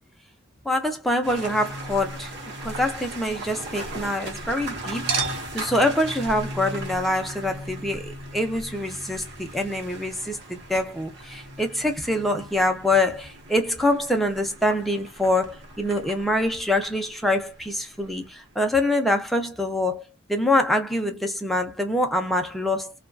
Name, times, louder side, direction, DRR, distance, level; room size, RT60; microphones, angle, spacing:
voice 1, 0.6-2.3 2.6-20.0 20.3-22.9, left 1 dB, ahead, 0.5 m, -25 dB
sound 1, 1.2-18.4, right 1 dB, 55° right, 1.0 m, -38 dB
Chink clink, 1.7-4.6 5.1-10.5 10.7-10.8, right 4 dB, 90° right, 0.9 m, -38 dB
2.6 x 2.3 x 2.2 m
head